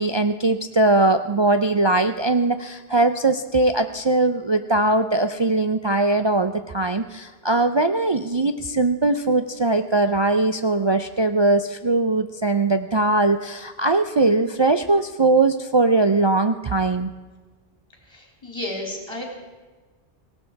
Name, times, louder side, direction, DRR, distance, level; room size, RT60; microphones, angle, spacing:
voice 1, 0.0-17.1, right 2 dB, 45° right, 8 dB, 0.3 m, -20 dB
voice 2, 18.1-19.2, left 1 dB, 25° left, 0 dB, 3.3 m, -32 dB
18.5 x 16.5 x 4.6 m, 1.3 s
omnidirectional pair, 1.2 m